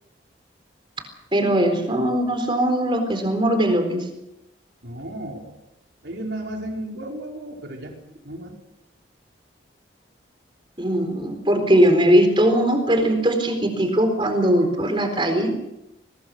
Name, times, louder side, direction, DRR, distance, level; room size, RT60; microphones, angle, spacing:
voice 1, 1.3-4.0 10.8-15.5, right 1 dB, 25° right, 6 dB, 4.0 m, -20 dB
voice 2, 4.8-5.5 6.0-7.9 8.2-8.5, right 1 dB, 60° right, 1 dB, 4.6 m, -33 dB
21.5 x 20.5 x 6.4 m, 0.91 s
head